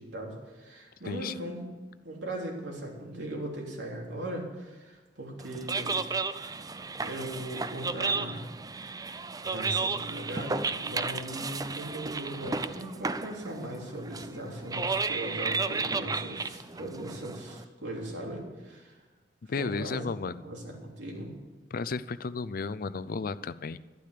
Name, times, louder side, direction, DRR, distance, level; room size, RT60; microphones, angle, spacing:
voice 1, 0.0-1.7 2.0-6.7 7.0-8.4 9.4-19.0 19.6-20.1 20.4-21.3, right 1 dB, 80° right, -1 dB, 3.5 m, -39 dB
sound 1, 5.4-17.6, right 4 dB, 20° right, 0.5 m, -33 dB
voice 2, 19.5-20.5 21.7-23.8, left 4 dB, 55° left, 15 dB, 0.5 m, -33 dB
12.0 x 11.5 x 6.7 m, 1.2 s
head